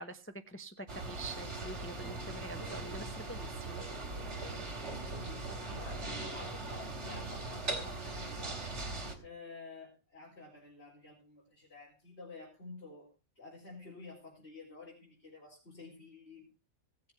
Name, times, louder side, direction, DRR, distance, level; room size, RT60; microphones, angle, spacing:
voice 1, 0.0-3.8, right 1 dB, 10° left, 7 dB, 0.6 m, -46 dB
sound 1, 0.9-9.2, right 2 dB, 50° right, 3.0 m, -40 dB
voice 2, 4.8-8.8 9.2-16.5, left 3 dB, 45° left, -5 dB, 4.6 m, -51 dB
18.0 x 7.7 x 4.5 m, 0.32 s
omnidirectional pair, 1.5 m